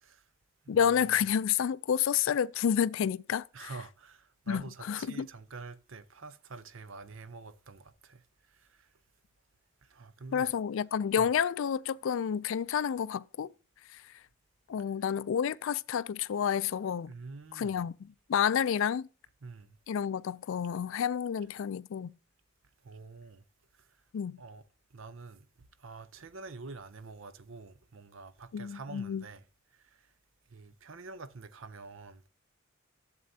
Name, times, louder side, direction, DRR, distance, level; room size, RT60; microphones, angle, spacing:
voice 1, 0.7-3.7 4.5-5.3 10.3-13.5 14.7-17.1 17.5-19.1 19.9-22.1 24.1-24.4 28.5-29.2, left 8 dB, 65° left, 0.3 m, -30 dB
voice 2, 3.5-8.2 8.6-8.9 9.9-10.5 11.2-11.3 17.1-17.8 19.4-19.7 22.8-23.4 24.4-24.6 24.9-25.5 25.8-29.4 30.5-32.3, right 3 dB, 65° right, 0.7 m, -47 dB
11.0 x 7.6 x 2.7 m
head